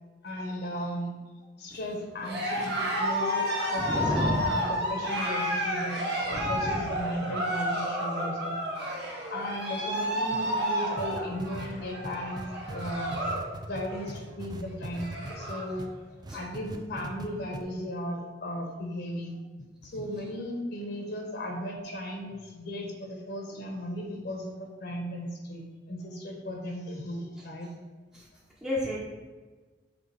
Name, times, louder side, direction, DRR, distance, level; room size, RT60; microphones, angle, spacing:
voice 1, 0.2-1.1 1.6-8.6 9.3-12.4 12.7-13.1 13.6-15.9 16.3-19.4 19.8-27.7, equal, 65° left, 1 dB, 1.1 m, -36 dB
Cheering, 2.2-13.5 13.8-14.2 14.6-14.7 14.9-15.7, equal, 65° right, 1.3 m, -31 dB
voice 2, 3.8-4.4 6.4-6.5 28.6-29.0, equal, 5° right, -5 dB, 0.8 m, -29 dB
sound 1, 11.0-15.9 16.2-17.3 17.5-17.6, right 2 dB, 25° right, 0.4 m, -39 dB
5.4 x 3.7 x 4.8 m, 1.3 s
head